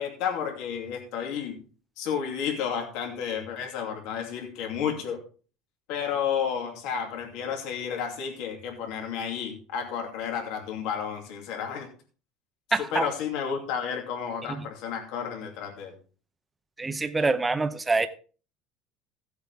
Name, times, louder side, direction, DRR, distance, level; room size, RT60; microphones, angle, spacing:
voice 1, 0.0-1.5 2.0-5.2 5.9-11.9 12.8-15.9, left 7 dB, 65° left, 2.7 m, -31 dB
voice 2, 12.7-13.1 14.6-14.7 16.8-18.1, right 3 dB, 10° right, 0.7 m, -25 dB
16.0 x 7.9 x 3.6 m
cardioid pair, 160°, 0 cm